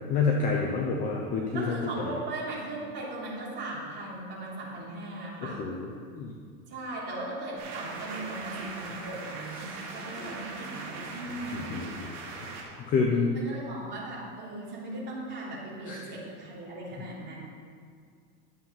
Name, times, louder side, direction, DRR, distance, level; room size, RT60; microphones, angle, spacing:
voice 1, 0.0-2.1 5.4-6.3 11.5-12.1 12.8-13.3 15.9-16.0, left 4 dB, 20° left, 0 dB, 0.6 m, -28 dB
voice 2, 1.5-5.6 6.7-11.8 13.3-17.4, right 2 dB, 25° right, -6 dB, 3.2 m, -38 dB
sound 1, 7.6-12.6, right 3 dB, 45° right, 3.4 m, -40 dB
12.0 x 7.4 x 5.8 m, 2.1 s
supercardioid pair, 165°, 45 cm